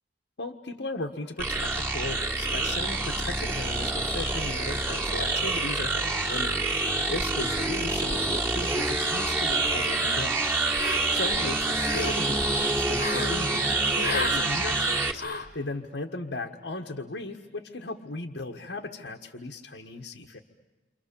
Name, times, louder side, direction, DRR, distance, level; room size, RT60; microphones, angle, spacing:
voice 1, 0.4-20.4, left 2 dB, 80° left, 1 dB, 1.6 m, -36 dB
sound 1, 1.4-15.1, right 2 dB, 15° right, 1.9 m, -27 dB
sound 2, 10.8-11.3 11.6-12.2 13.0-13.4 14.0-14.5 15.2-15.5, left 4 dB, 55° left, 1.4 m, -33 dB
29.5 x 26.0 x 7.1 m, 1.2 s
head